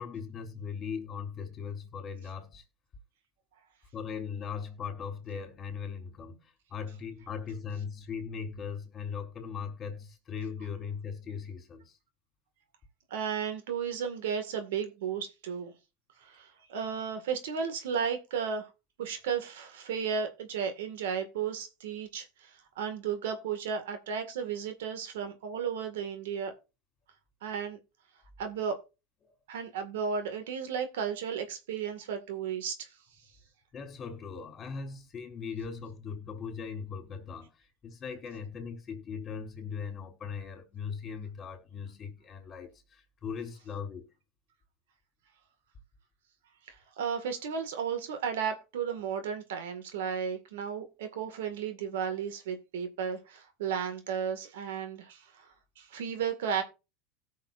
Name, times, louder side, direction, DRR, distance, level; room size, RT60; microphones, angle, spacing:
voice 1, 0.0-2.6 3.9-12.0 29.2-29.3 33.7-44.1, left 6 dB, 30° left, 3.8 m, -39 dB
voice 2, 13.1-15.7 16.2-18.7 19.0-26.5 27.4-27.8 28.4-28.8 29.5-32.9 46.7-55.5 55.8-56.6, right 7 dB, 85° right, 1.9 m, -34 dB
17.5 x 6.4 x 2.5 m
supercardioid pair, 130°, 0 cm